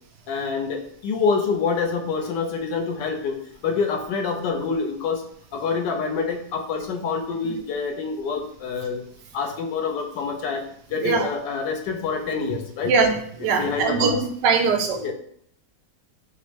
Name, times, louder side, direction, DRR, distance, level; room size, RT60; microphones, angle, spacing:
voice 1, 0.3-9.0 9.3-12.9 13.4-14.2 15.0-15.1, left 5 dB, 90° left, 4 dB, 1.3 m, -27 dB
voice 2, 12.8-14.1 14.4-15.0, right 5 dB, 90° right, 3 dB, 1.3 m, -21 dB
6.2 x 2.1 x 3.2 m, 0.66 s
omnidirectional pair, 1.9 m